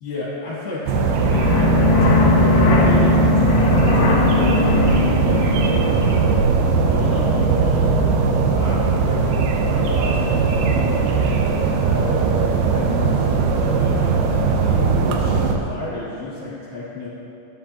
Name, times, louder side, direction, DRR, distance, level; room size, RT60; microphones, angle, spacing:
voice 1, 0.0-1.4 1.8-6.4 6.9-7.9 8.5-9.3 9.7-12.2 12.6-17.1, left 3 dB, 60° left, -8 dB, 3.3 m, -31 dB
sound 1, 0.9-15.6, right 4 dB, 75° right, 2.4 m, -19 dB
sound 2, 1.3-6.4, left 4 dB, 75° left, 2.9 m, -19 dB
12.0 x 9.6 x 2.8 m, 2.8 s
omnidirectional pair, 4.6 m